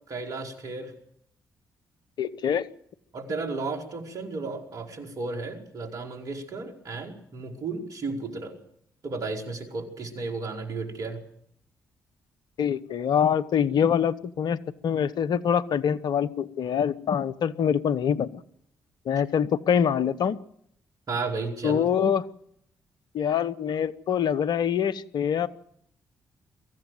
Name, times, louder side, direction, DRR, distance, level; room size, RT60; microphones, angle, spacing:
voice 1, 0.1-0.9 3.1-8.5 9.0-11.2 19.2-19.3 21.1-21.9, right 3 dB, 55° right, 3 dB, 4.7 m, -33 dB
voice 2, 2.2-2.6 12.6-18.3 19.1-20.4 21.6-22.2 23.1-25.5, left 8 dB, 65° left, 16 dB, 0.9 m, -25 dB
23.5 x 15.0 x 7.9 m, 0.73 s
hypercardioid pair, 40°, 8 cm